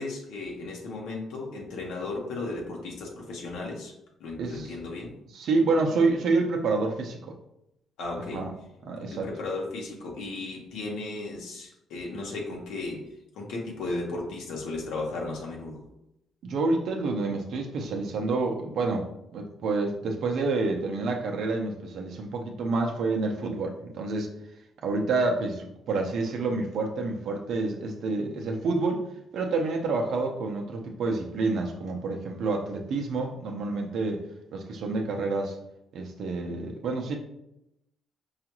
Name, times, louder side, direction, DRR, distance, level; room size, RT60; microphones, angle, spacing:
voice 1, 0.0-3.9 4.2-5.1 8.0-8.4 9.1-13.0 13.3-15.8, left 2 dB, 85° left, -1 dB, 0.9 m, -35 dB
voice 2, 4.4-4.7 5.3-7.4 8.3-8.5 8.8-9.3 16.4-24.3 24.8-29.1 29.3-34.2 34.5-35.6 35.9-37.2, right 3 dB, 70° right, 1 dB, 0.6 m, -28 dB
4.8 x 2.4 x 3.0 m, 0.83 s
cardioid pair, 90°, 0 cm